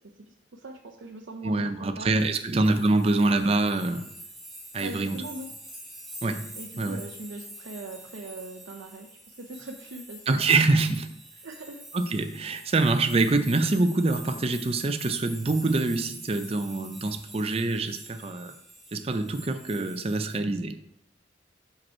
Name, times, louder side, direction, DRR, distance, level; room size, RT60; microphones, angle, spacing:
voice 1, 0.3-2.2 2.6-2.8 4.8-5.5 6.6-10.4 11.4-11.8, right 2 dB, 80° right, 0 dB, 0.6 m, -41 dB
voice 2, 1.4-4.1 4.7-5.2 6.2-6.5 6.8-7.0 10.3-11.1 11.9-18.5 18.9-20.8, right 2 dB, 30° right, 8 dB, 0.5 m, -25 dB
sound 1, 2.2-20.4, right 1 dB, ahead, 0.9 m, -46 dB
6.0 x 5.2 x 4.3 m, 0.76 s
head